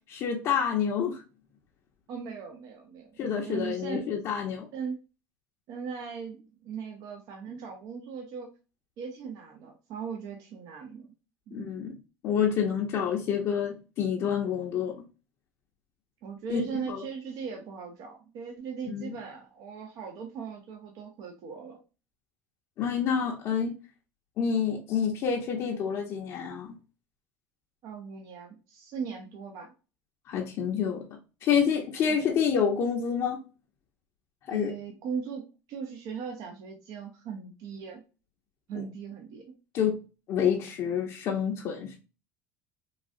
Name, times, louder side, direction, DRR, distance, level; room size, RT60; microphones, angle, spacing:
voice 1, 0.1-1.2 3.2-4.7 11.5-11.9 12.2-15.0 16.5-17.0 18.9-19.2 22.8-23.7 24.4-26.7 30.3-31.1 31.4-33.4 34.5-34.7 39.7-40.0 40.3-42.0, left 7 dB, 50° left, -2 dB, 0.8 m, -28 dB
voice 2, 2.1-4.1 4.7-5.0 5.7-8.5 9.0-11.1 11.5-11.6 16.2-21.8 27.8-29.7 32.1-32.2 34.5-38.0 38.7-39.5, right 6 dB, 55° right, 2 dB, 0.8 m, -39 dB
3.9 x 2.3 x 2.6 m, 0.31 s
supercardioid pair, 125°, 7 cm